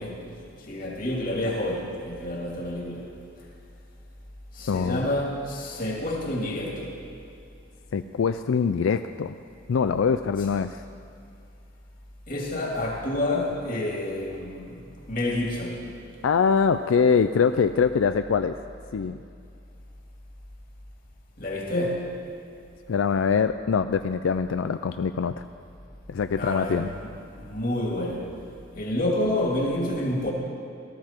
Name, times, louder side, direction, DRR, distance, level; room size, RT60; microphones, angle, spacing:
voice 1, 0.0-3.1 4.5-7.0 12.3-15.9 21.4-22.2 26.3-27.1 27.4-28.3 28.7-30.3, left 1 dB, 45° left, 2.4 m, -29 dB
voice 2, 4.7-5.1 7.9-9.3 9.7-10.8 16.2-18.5 18.9-19.2 22.9-25.4 26.1-26.9, left 6 dB, 85° left, 0.4 m, -23 dB
18.5 x 13.5 x 4.5 m
head